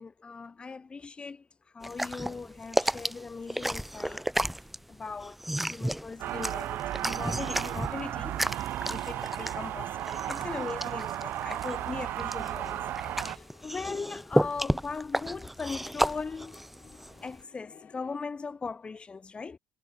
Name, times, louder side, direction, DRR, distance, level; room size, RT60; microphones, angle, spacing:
voice 1, 0.0-1.5 1.7-4.3 4.9-16.7 17.2-19.6, left 4 dB, 30° left, 4.5 m, -39 dB
sound 1, 1.8-17.4, right 1 dB, 5° right, 1.0 m, -33 dB
sound 2, 6.2-13.4, right 13 dB, 65° right, 1.4 m, -34 dB
sound 3, 8.9-18.2, left 8 dB, 45° left, 7.3 m, -56 dB
supercardioid pair, 80°, 4 cm